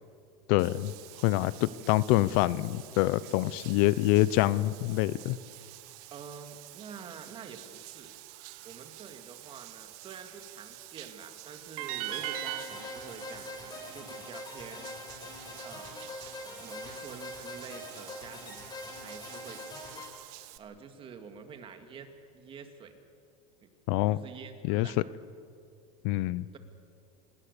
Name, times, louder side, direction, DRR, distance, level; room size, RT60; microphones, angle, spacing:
voice 1, 0.5-0.9 1.2-5.4 23.9-24.2 24.6-24.9 26.0-26.5, left 17 dB, 60° left, 18 dB, 0.6 m, -26 dB
Bathtub (filling or washing), 0.6-20.6, right 17 dB, 60° right, 1.4 m, -49 dB
voice 2, 6.1-8.1 8.6-14.9 15.6-16.1 16.6-19.6 19.8-20.1 20.6-22.1 22.3-23.0 23.6-23.7 24.1-25.0, right 6 dB, 30° right, 6 dB, 2.2 m, -47 dB
sound 1, 11.8-14.9, right 13 dB, 80° right, 1.6 m, -39 dB
sound 2, 12.1-20.1, left 2 dB, 20° left, 4.8 m, -44 dB
27.0 x 19.0 x 6.8 m, 2.3 s
supercardioid pair, 135°, 18 cm